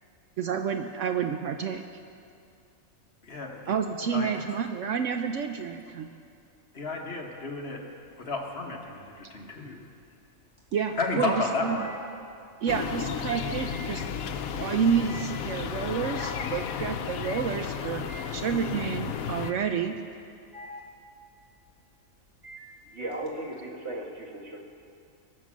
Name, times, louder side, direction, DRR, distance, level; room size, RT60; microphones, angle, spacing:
voice 1, 0.4-1.8 3.7-6.1 10.7-11.8 12.6-14.0 14.5-20.0, right 7 dB, 70° right, 6 dB, 0.9 m, -29 dB
voice 2, 3.2-3.7 4.1-4.3 6.7-7.8 8.2-9.8 11.0-11.9, left 3 dB, 50° left, 1 dB, 1.5 m, -32 dB
sound 1, 7.8-8.4 8.8-23.3, equal, 15° right, 2.0 m, -48 dB
sound 2, 12.7-19.5, left 7 dB, 85° left, 1.1 m, -33 dB
voice 3, 22.9-24.6, right 1 dB, 50° right, -1 dB, 1.9 m, -36 dB
22.0 x 7.5 x 6.2 m, 2.5 s
omnidirectional pair, 1.4 m